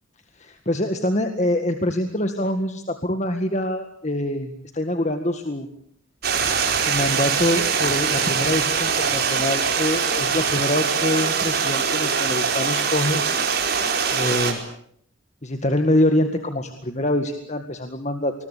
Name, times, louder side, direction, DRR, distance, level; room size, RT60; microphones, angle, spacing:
voice 1, 0.4-5.7 6.9-13.2 14.1-14.6 15.4-18.3, left 1 dB, 35° left, 6 dB, 1.9 m, -24 dB
Stream, 6.2-14.5, right 6 dB, 50° right, 4.6 m, -22 dB
27.5 x 21.5 x 8.4 m, 0.68 s
head